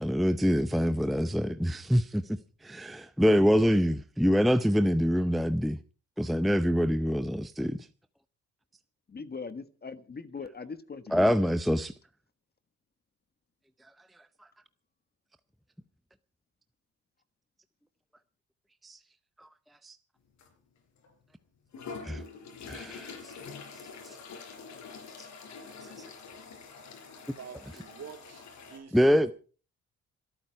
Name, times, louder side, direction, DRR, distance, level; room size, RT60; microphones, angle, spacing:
voice 1, 0.0-2.2 2.6-5.8 6.2-7.8 11.1-11.9 18.8-19.0 19.8-20.0 22.0-22.2 22.7-23.3 24.0-24.1 28.9-29.3, equal, ahead, 0.6 m, -25 dB
voice 2, 9.1-11.5, left 4 dB, 30° left, 1.4 m, -41 dB
sound 1, 20.4-20.5 21.0-21.1 21.7-28.8, left 5 dB, 70° left, 4.5 m, -45 dB
voice 3, 27.1-28.4 28.7-29.3, right 7 dB, 60° right, 3.4 m, -47 dB
26.5 x 9.1 x 4.7 m
cardioid pair, 90°, 30 cm